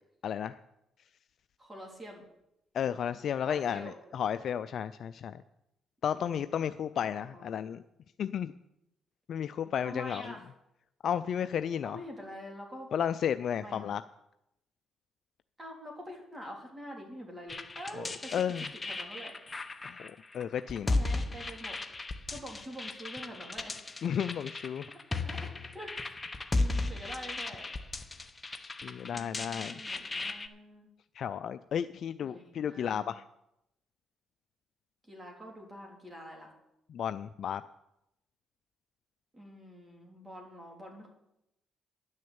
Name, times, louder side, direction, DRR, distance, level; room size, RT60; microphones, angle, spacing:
voice 1, 0.2-0.5 2.7-5.3 6.0-7.8 8.2-8.5 9.3-10.3 11.0-12.0 12.9-14.0 18.0-18.1 18.3-18.7 19.8-21.0 24.0-24.9 28.6-29.8 31.2-33.2 36.9-37.6, left 8 dB, 60° left, 12 dB, 0.4 m, -33 dB
voice 2, 1.6-2.2 3.4-4.0 6.1-6.7 7.0-7.6 9.8-10.5 11.8-12.9 13.5-13.9 15.6-18.4 18.7-19.3 20.8-21.8 22.3-23.9 24.9-25.0 25.2-25.9 26.5-27.7 29.1-30.9 32.2-33.1 35.0-36.5 39.3-41.1, equal, 20° right, 0 dB, 3.5 m, -46 dB
sound 1, 17.5-30.5, left 2 dB, 20° left, 1.0 m, -36 dB
11.0 x 6.4 x 8.7 m, 0.85 s
cardioid pair, 85°, 0 cm